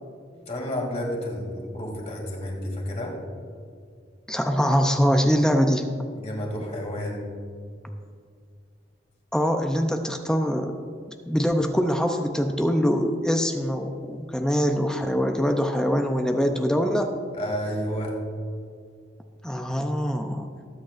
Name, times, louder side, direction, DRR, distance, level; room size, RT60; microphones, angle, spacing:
voice 1, 0.5-3.1 6.1-7.3 17.4-18.2, equal, 40° left, -1 dB, 2.4 m, -31 dB
voice 2, 4.3-5.9 9.3-10.7 11.3-17.1 19.4-20.5, equal, 5° left, 5 dB, 0.5 m, -23 dB
19.0 x 8.8 x 2.5 m, 2.2 s
head